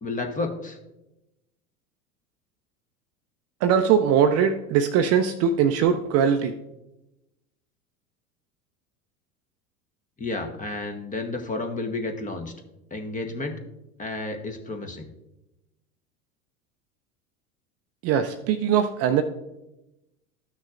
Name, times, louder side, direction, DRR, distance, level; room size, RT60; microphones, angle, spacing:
voice 1, 0.0-0.8 10.2-12.5 12.9-13.6 14.0-15.1, left 3 dB, 20° left, 4 dB, 1.1 m, -31 dB
voice 2, 3.6-6.5 18.0-19.2, right 8 dB, 35° right, 8 dB, 0.5 m, -21 dB
13.0 x 6.1 x 2.5 m, 0.96 s
hypercardioid pair, 85°, 43 cm